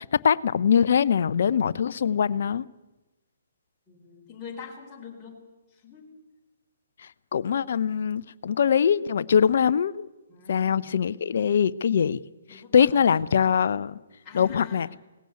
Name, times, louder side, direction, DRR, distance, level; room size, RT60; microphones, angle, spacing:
voice 1, 0.0-2.6 7.3-10.1 10.5-12.2 12.7-14.0 14.3-14.9, left 7 dB, 55° left, 0.6 m, -22 dB
voice 2, 3.9-5.4 5.7-6.1 10.3-10.9 12.5-13.2 14.2-14.9, left 6 dB, 15° left, 4.7 m, -44 dB
18.5 x 15.5 x 9.6 m
figure-of-eight pair, 130°, 0 cm